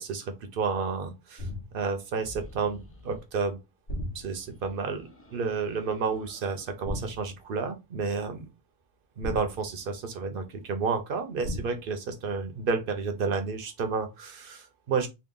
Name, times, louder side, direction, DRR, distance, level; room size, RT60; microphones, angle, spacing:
voice 1, 0.0-1.5 1.7-3.6 4.1-8.5 9.2-15.1, right 5 dB, 60° right, 0.9 m, -31 dB
sound 1, 1.4-1.9 3.9-4.6 6.8-7.4 9.2-10.1 11.4-12.0, equal, 65° left, 1.5 m, -36 dB
sound 2, 2.1-3.3 4.2-6.8, left 2 dB, 15° left, 0.5 m, -51 dB
3.6 x 2.2 x 3.7 m
omnidirectional pair, 1.1 m